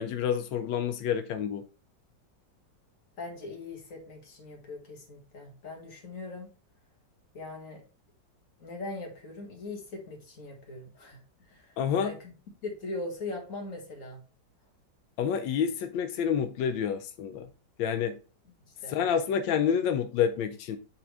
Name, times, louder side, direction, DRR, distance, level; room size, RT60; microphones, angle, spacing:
voice 1, 0.0-1.6 11.8-12.1 15.2-17.5 17.8-18.2 18.9-20.8, left 8 dB, 85° left, 1.3 m, -28 dB
voice 2, 3.2-6.5 7.3-7.8 8.6-11.2 11.5-12.3 12.6-14.2 18.7-19.0, left 2 dB, 45° left, 2.0 m, -40 dB
8.6 x 3.7 x 3.3 m
omnidirectional pair, 2.0 m